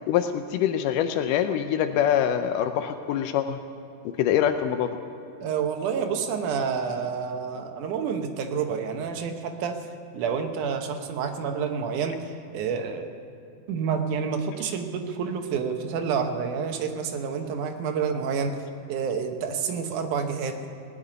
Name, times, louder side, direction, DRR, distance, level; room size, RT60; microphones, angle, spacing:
voice 1, 0.1-3.6 4.2-5.0, left 9 dB, 85° left, 8 dB, 2.2 m, -24 dB
voice 2, 5.4-9.8 10.1-13.1 13.7-18.6 18.9-20.7, right 6 dB, 75° right, 5 dB, 2.5 m, -29 dB
18.5 x 7.5 x 9.6 m, 2.6 s
omnidirectional pair, 3.7 m